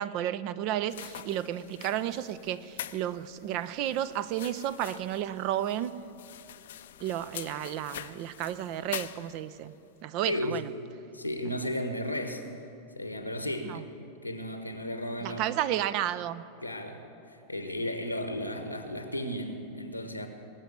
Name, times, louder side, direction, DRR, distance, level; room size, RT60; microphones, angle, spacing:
voice 1, 0.0-5.9 7.0-9.7 10.0-10.7 13.6-13.8 15.2-16.5, right 11 dB, 45° right, 16 dB, 0.5 m, -32 dB
sound 1, 0.9-9.7, left 11 dB, 60° left, 0.5 m, -45 dB
voice 2, 10.3-10.6 11.1-12.5 13.0-13.9 14.2-15.5 16.6-20.3, left 1 dB, 90° left, 7 dB, 1.0 m, -34 dB
20.0 x 7.0 x 8.1 m, 2.9 s
figure-of-eight pair, 90°, 0 cm